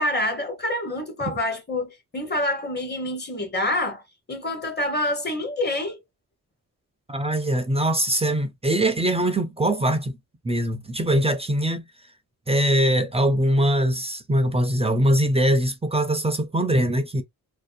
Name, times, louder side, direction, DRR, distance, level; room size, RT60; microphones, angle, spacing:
voice 1, 0.0-4.0 4.3-6.0, left 1 dB, 30° left, 0.9 m, -27 dB
voice 2, 7.1-10.1 10.4-11.9 12.5-17.2, right 1 dB, 20° right, 0.4 m, -22 dB
2.6 x 2.0 x 2.4 m
cardioid pair, 75°, 35 cm